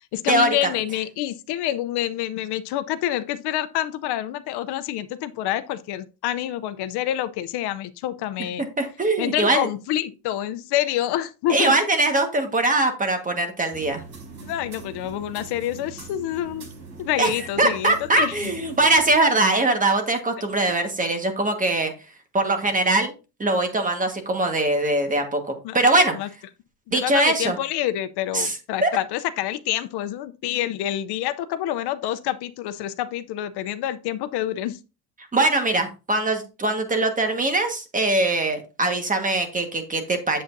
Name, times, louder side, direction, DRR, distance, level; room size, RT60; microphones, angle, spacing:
voice 1, 0.1-8.7 9.2-11.7 14.4-16.7 17.0-18.5 25.6-25.8 26.1-26.3 26.9-34.8, left 12 dB, 75° left, 0.7 m, -27 dB
voice 2, 8.6-9.7 11.5-14.0 17.2-17.3 17.6-21.9 22.3-23.1 23.4-26.1 26.9-27.6 28.3-28.9 35.3-40.4, right 2 dB, 20° right, 1.5 m, -22 dB
sound 1, 13.7-19.1, right 4 dB, 60° right, 4.8 m, -42 dB
7.9 x 7.7 x 2.6 m
cardioid pair, 135°, 40 cm